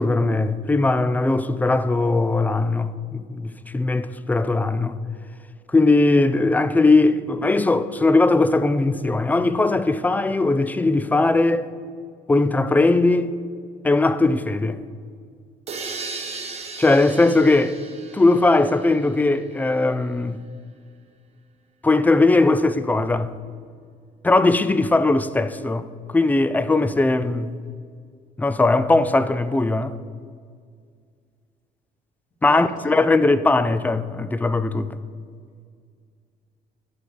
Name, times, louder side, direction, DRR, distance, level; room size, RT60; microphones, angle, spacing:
voice 1, 0.0-5.0 5.7-11.7 12.3-13.3 13.8-14.8 16.8-17.8 18.1-20.4 21.8-23.3 24.2-27.5 28.4-30.0 32.4-35.0, left 2 dB, 10° left, 0.3 m, -19 dB
sound 1, 15.7-19.4, right 4 dB, 40° right, 0.9 m, -36 dB
voice 2, 32.4-32.9, equal, 45° left, 2.6 m, -38 dB
11.0 x 3.9 x 6.5 m
cardioid pair, 110°, 17 cm